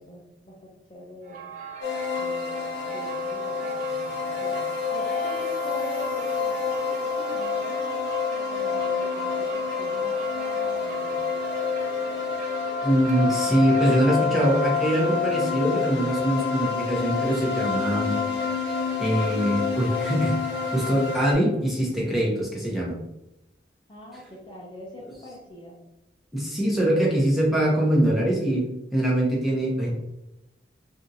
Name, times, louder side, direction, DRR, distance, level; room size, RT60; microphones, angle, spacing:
voice 1, 0.0-1.4 2.2-4.7 4.9-11.3 23.9-25.8 29.9-30.0, left 1 dB, 25° left, -4 dB, 0.5 m, -43 dB
sound 1, 1.2-17.7, right 7 dB, 45° right, 0.5 m, -39 dB
sound 2, 1.8-21.3, left 6 dB, 85° left, 0.7 m, -28 dB
sound 3, 4.9-22.5, right 1 dB, 80° right, 0.9 m, -46 dB
voice 2, 12.8-18.1 18.6-18.7 19.0-20.3 20.7-23.0 26.3-28.6 28.9-29.9, right 1 dB, ahead, -5 dB, 0.8 m, -23 dB
3.4 x 2.6 x 2.8 m, 0.90 s
head